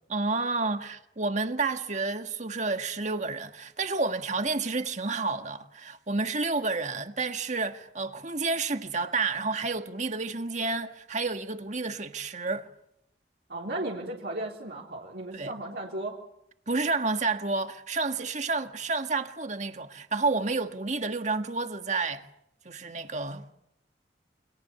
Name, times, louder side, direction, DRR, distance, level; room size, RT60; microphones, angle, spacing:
voice 1, 0.1-12.7 15.3-15.5 16.7-22.3 22.7-23.5, right 3 dB, 40° right, 1.8 m, -30 dB
voice 2, 13.5-16.2, right 2 dB, 65° right, 3.9 m, -35 dB
29.0 x 26.0 x 7.0 m
head